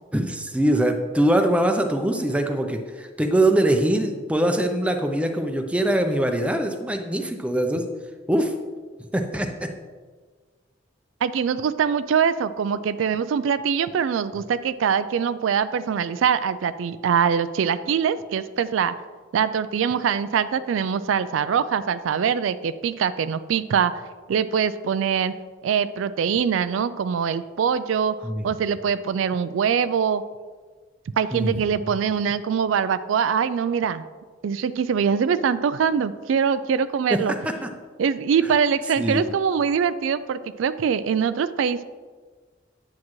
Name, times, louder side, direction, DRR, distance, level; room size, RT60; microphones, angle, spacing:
voice 1, 0.1-7.8 8.3-8.5 9.1-9.7 28.2-28.4 31.3-31.9 37.1-37.7 39.0-39.2, right 1 dB, 5° right, 5 dB, 0.5 m, -23 dB
voice 2, 11.2-18.9 19.3-24.0 24.3-25.3 25.6-28.2 28.4-30.2 31.2-34.0 34.4-37.3 38.0-41.8, right 7 dB, 80° right, 13 dB, 0.3 m, -23 dB
9.5 x 7.4 x 3.1 m, 1.4 s
head